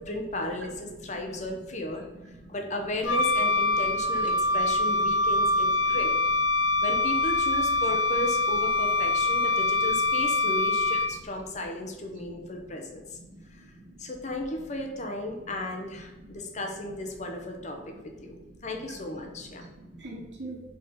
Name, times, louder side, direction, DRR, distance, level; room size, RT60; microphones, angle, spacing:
voice 1, 0.0-2.0 2.5-6.1 6.8-13.2 13.5-13.6 14.0-19.6, left 1 dB, 40° left, 3 dB, 0.9 m, -35 dB
Wind instrument woodwind instrument, 3.0-11.4, left 2 dB, 85° left, 0.5 m, -24 dB
voice 2, 13.1-14.1 16.2-16.3 18.2-18.9 19.3-20.6, right 2 dB, 75° right, -3 dB, 2.0 m, -46 dB
5.4 x 4.2 x 5.5 m, 1.1 s
head